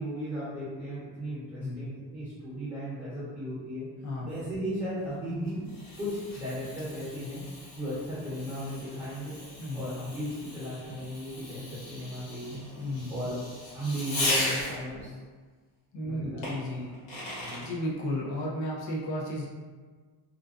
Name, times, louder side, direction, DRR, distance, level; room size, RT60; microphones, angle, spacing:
voice 1, 0.0-3.9 4.2-5.6 6.0-7.4 7.7-9.3 9.7-12.6 13.1-13.4 13.7-15.1 16.0-16.5 16.8-16.9 17.4-17.7, equal, 10° right, -11 dB, 0.9 m, -36 dB
voice 2, 1.6-1.9 4.0-4.4 9.6-9.9 12.8-13.2 15.9-16.9 17.2-19.5, left 1 dB, 40° left, -4 dB, 0.5 m, -34 dB
Fireworks, 5.1-15.0 16.4-17.7, left 1 dB, 75° left, 1.2 m, -37 dB
2.5 x 2.2 x 2.4 m, 1.5 s
cardioid pair, 155°, 45 cm